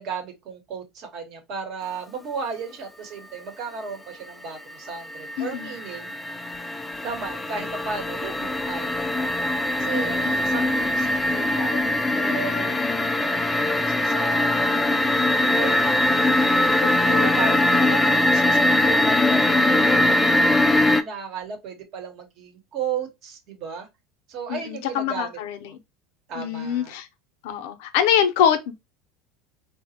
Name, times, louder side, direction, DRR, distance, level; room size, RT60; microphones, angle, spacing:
voice 1, 0.0-6.1 7.0-9.3 9.8-15.0 15.4-16.4 17.0-20.3 20.6-23.9 24.3-25.4 26.3-26.9, right 5 dB, 50° right, 0.9 m, -35 dB
sound 1, 4.3-4.4 4.7-21.0, left 1 dB, 10° left, 0.3 m, -21 dB
voice 2, 5.4-5.7 9.8-10.6 16.8-17.4 24.5-25.8 26.3-27.1 27.4-28.7, left 9 dB, 75° left, 0.5 m, -25 dB
4.0 x 2.1 x 2.7 m
supercardioid pair, 135°, 0 cm